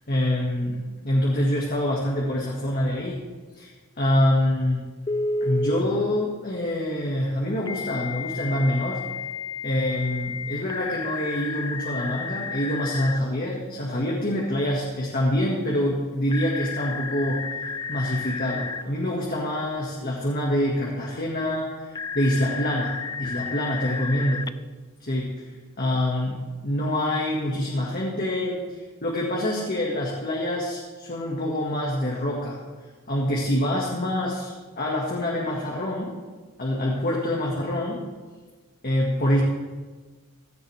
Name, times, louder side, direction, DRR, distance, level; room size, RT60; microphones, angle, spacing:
voice 1, 0.1-3.2 3.6-3.7 4.0-4.8 5.4-9.0 9.6-17.4 17.9-24.5 25.0-25.5 25.8-26.4 26.6-32.6 33.1-36.2 36.6-38.1 38.8-39.4, left 1 dB, 40° left, -3 dB, 2.0 m, -26 dB
Telephone, 5.1-5.8 7.7-13.2 16.3-18.8 22.0-24.5, left 4 dB, 15° left, 0.3 m, -32 dB
16.5 x 14.5 x 3.5 m, 1.3 s
head